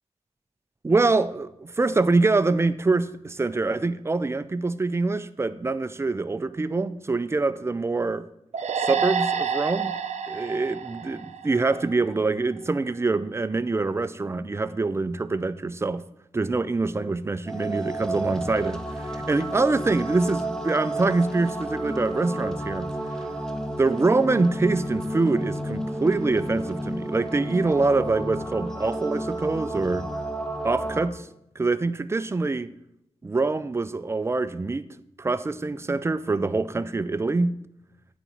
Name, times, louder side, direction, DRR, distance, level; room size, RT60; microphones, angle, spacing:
voice 1, 0.8-8.3 8.8-10.0 10.3-16.0 16.3-22.9 23.8-30.1 30.6-31.3 31.6-32.7 33.2-34.9 35.2-37.6, right 3 dB, 20° right, 0.4 m, -25 dB
sound 1, 8.5-12.0, right 6 dB, 75° right, 0.6 m, -28 dB
sound 2, 17.5-31.1, right 1 dB, 5° left, 1.0 m, -31 dB
9.0 x 4.0 x 7.2 m
wide cardioid pair, 100°, 12 cm